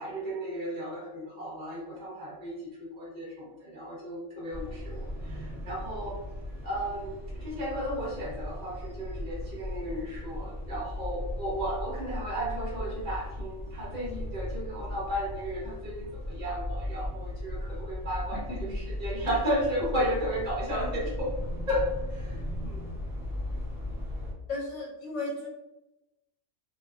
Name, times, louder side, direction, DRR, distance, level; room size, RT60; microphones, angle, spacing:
voice 1, 0.0-6.2 6.6-21.3 21.7-22.8, equal, 35° right, -6 dB, 1.0 m, -34 dB
sound 1, 4.5-24.3, left 1 dB, ahead, 1.0 m, -37 dB
voice 2, 24.5-25.5, left 2 dB, 60° left, -3 dB, 1.1 m, -35 dB
2.7 x 2.1 x 2.4 m, 0.96 s
omnidirectional pair, 1.5 m